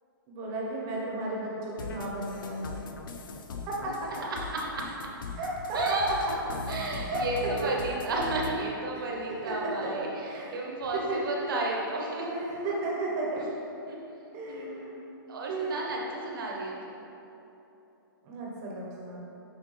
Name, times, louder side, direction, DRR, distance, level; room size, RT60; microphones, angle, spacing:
voice 1, 0.3-2.8 3.7-4.1 5.3-6.0 7.1-7.2 8.1-8.2 8.9-10.6 11.1-11.4 12.2-13.4 14.3-14.9 15.5-15.9 18.2-19.2, right 2 dB, 30° right, -3 dB, 1.2 m, -34 dB
sound 1, 1.8-8.5, left 3 dB, 65° left, 0.6 m, -39 dB
voice 2, 4.2-4.8 5.7-6.1 6.7-12.2 12.6-12.7 13.9-15.0 15.3-17.0, right 2 dB, 70° right, -2 dB, 1.3 m, -33 dB
6.3 x 4.9 x 3.4 m, 3.0 s
hypercardioid pair, 150°, 12 cm